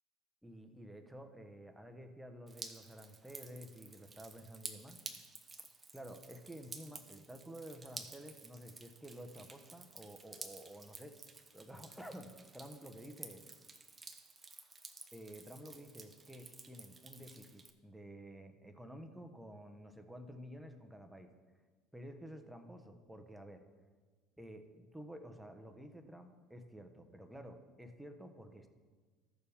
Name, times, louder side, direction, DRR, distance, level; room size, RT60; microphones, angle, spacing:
voice 1, 0.4-5.0 5.9-11.2 11.5-13.5 15.1-21.3 21.9-23.6 24.4-28.7, equal, 5° right, 6 dB, 1.1 m, -51 dB
Drip, 2.5-17.7, right 3 dB, 25° right, 0.9 m, -52 dB
14.0 x 6.7 x 3.6 m, 1.4 s
hypercardioid pair, 75°, 0 cm